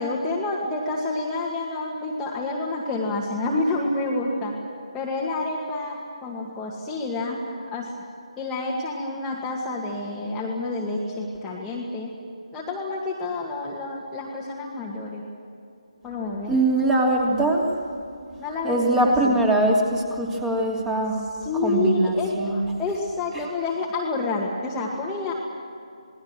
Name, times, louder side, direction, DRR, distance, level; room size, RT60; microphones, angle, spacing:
voice 1, 0.0-4.5 4.9-7.9 8.4-12.1 12.5-15.3 16.0-16.5 18.4-19.4 21.4-25.3, left 2 dB, 10° left, -5 dB, 2.1 m, -28 dB
voice 2, 16.5-17.7 18.6-21.2 21.5-22.6 23.3-23.4, right 1 dB, 10° right, 0 dB, 3.0 m, -22 dB
28.0 x 20.0 x 7.8 m, 2.5 s
figure-of-eight pair, 150°, 3 cm